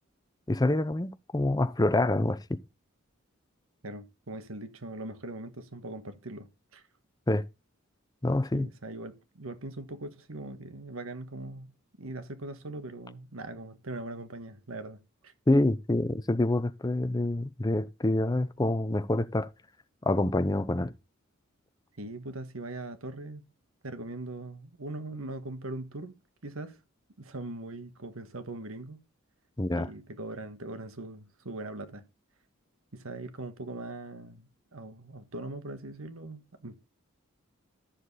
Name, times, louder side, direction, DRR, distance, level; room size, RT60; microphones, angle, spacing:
voice 1, 0.5-2.6 7.3-7.4 8.2-8.7 15.5-19.5 20.1-20.9 29.6-29.9, left 1 dB, 20° left, 0.7 m, -26 dB
voice 2, 3.8-6.8 8.5-11.7 12.0-15.3 22.0-23.4 23.8-26.2 26.4-26.8 27.2-29.0 29.7-32.0 32.9-36.7, right 2 dB, 85° right, 1.4 m, -41 dB
13.0 x 7.2 x 4.2 m
head